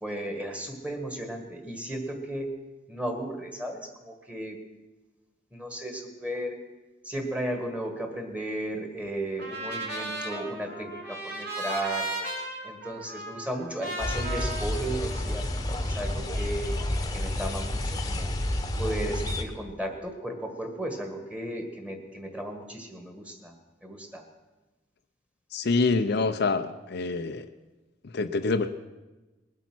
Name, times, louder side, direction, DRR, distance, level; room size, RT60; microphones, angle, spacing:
voice 1, 0.0-2.5 2.9-4.6 5.5-6.6 7.0-12.1 12.6-15.5 15.8-16.8 17.1-18.3 18.8-23.5 23.8-24.2, right 1 dB, 5° right, 4 dB, 1.7 m, -35 dB
Trumpet, 9.4-15.6, right 1 dB, 60° right, 2.9 m, -36 dB
sound 1, 14.0-19.4, left 1 dB, 20° left, 1.1 m, -30 dB
voice 2, 25.5-27.5 28.1-28.7, left 3 dB, 60° left, 8 dB, 0.6 m, -26 dB
20.5 x 8.3 x 6.1 m, 1.1 s
head